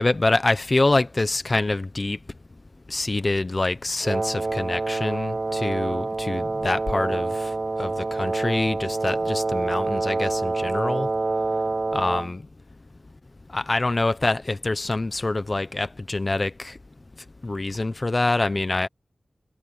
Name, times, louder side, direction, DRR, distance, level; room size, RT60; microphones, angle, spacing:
voice 1, 0.0-2.2 2.9-7.5 7.8-11.1 11.9-12.4 13.5-16.7 17.4-18.9, left 2 dB, 40° left, 1.1 m, -25 dB
Wind instrument woodwind instrument, 4.0-12.3, right 3 dB, 45° right, 0.5 m, -27 dB
wide cardioid pair, 60°, 0 cm